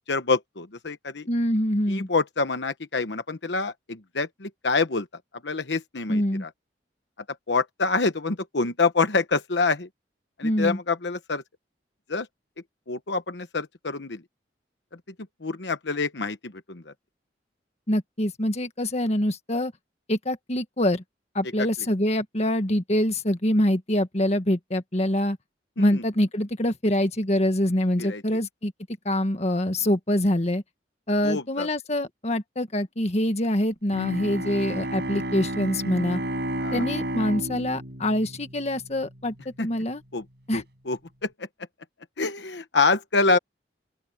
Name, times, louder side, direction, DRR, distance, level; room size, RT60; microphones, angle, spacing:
voice 1, 0.1-1.3 1.9-5.1 5.4-6.5 7.5-9.9 10.4-11.4 12.1-12.3 12.9-14.2 15.4-16.9 25.8-26.0 28.0-28.2 31.2-31.7 36.6-36.8 39.6-39.7 40.1-40.2 40.5-41.3 42.2-43.4, left 3 dB, 70° left, 1.1 m, -26 dB
voice 2, 1.3-2.1 6.1-6.4 10.4-10.8 17.9-19.7 20.1-21.0 21.3-25.4 25.8-28.7 29.0-30.6 31.1-36.2 36.7-40.0 40.5-40.6, left 1 dB, 40° left, 1.6 m, -25 dB
Bowed string instrument, 33.9-39.2, right 1 dB, 65° right, 6.5 m, -31 dB
open air
head